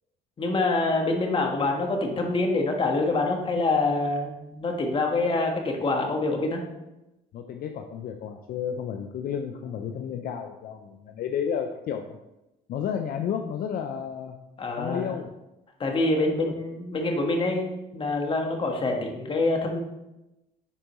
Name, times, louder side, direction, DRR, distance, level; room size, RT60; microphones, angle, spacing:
voice 1, 0.4-6.6 14.6-15.2 15.8-17.7 17.9-19.8, left 2 dB, 30° left, 2 dB, 1.4 m, -26 dB
voice 2, 7.3-12.2 12.7-14.3 14.8-15.3 16.2-16.5, left 8 dB, 60° left, 4 dB, 0.5 m, -32 dB
9.9 x 4.5 x 3.0 m, 0.96 s
cardioid pair, 110°, 17 cm